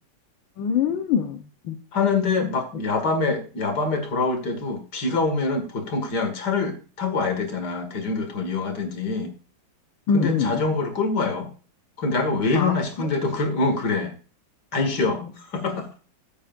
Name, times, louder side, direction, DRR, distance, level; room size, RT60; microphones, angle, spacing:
voice 1, 0.6-1.8 10.1-10.6 12.5-13.1 15.2-15.3, left 6 dB, 90° left, 5 dB, 1.9 m, -25 dB
voice 2, 1.9-9.3 10.1-11.5 12.0-14.1 14.7-15.9, left 3 dB, 60° left, 6 dB, 2.6 m, -25 dB
15.0 x 8.2 x 2.6 m, 0.36 s
omnidirectional pair, 2.1 m